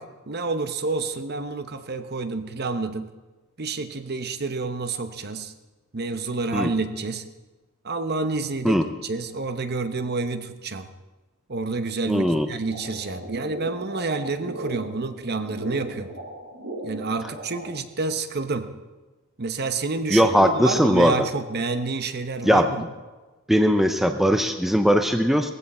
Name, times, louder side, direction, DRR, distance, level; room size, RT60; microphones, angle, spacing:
voice 1, 0.0-3.1 3.6-5.5 5.9-7.2 7.8-10.9 11.5-16.1 16.8-18.7 19.4-22.8, right 3 dB, 45° right, 9 dB, 0.9 m, -29 dB
voice 2, 12.1-12.5 20.1-21.2 22.4-22.7 23.5-25.5, equal, ahead, 6 dB, 0.6 m, -19 dB
sound 1, 12.7-17.7, right 1 dB, 90° right, 3.1 m, -37 dB
18.0 x 15.0 x 4.3 m, 1.2 s
head